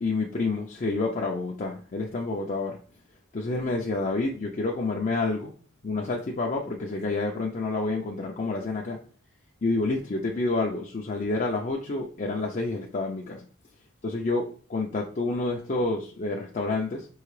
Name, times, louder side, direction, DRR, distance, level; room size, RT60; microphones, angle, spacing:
voice 1, 0.0-2.8 3.3-5.5 5.8-9.0 9.6-13.5 14.0-17.1, left 3 dB, 35° left, 0 dB, 0.5 m, -28 dB
4.7 x 2.8 x 3.1 m, 0.42 s
head